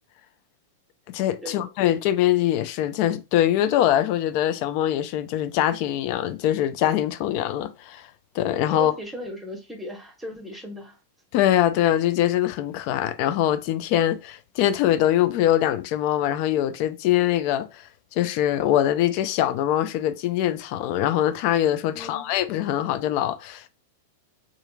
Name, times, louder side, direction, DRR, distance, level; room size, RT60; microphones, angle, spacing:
voice 1, 1.1-8.1 8.3-8.9 11.3-23.7, left 12 dB, 50° left, 0.4 m, -23 dB
voice 2, 8.7-11.0 21.9-22.3, right 1 dB, 5° right, 1.0 m, -37 dB
2.8 x 2.5 x 2.3 m
hypercardioid pair, 100°, 0 cm